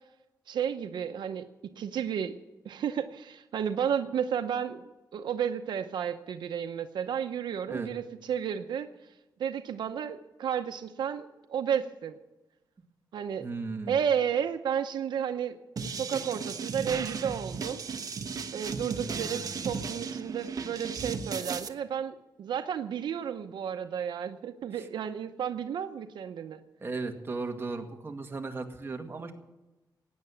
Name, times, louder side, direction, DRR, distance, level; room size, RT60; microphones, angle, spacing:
voice 1, 0.5-1.5 1.8-2.4 2.6-8.9 9.4-12.2 13.1-13.5 13.9-15.6 15.8-17.8 18.5-26.6, right 8 dB, 90° right, 8 dB, 0.8 m, -32 dB
voice 2, 13.4-14.0 16.3-16.4 18.9-19.5 24.8-24.9 26.8-29.3, right 3 dB, 30° right, 3 dB, 1.9 m, -36 dB
sound 1, 15.8-21.7, right 5 dB, 55° right, 1.2 m, -36 dB
16.0 x 9.8 x 7.1 m, 1.0 s
wide cardioid pair, 110°, 7 cm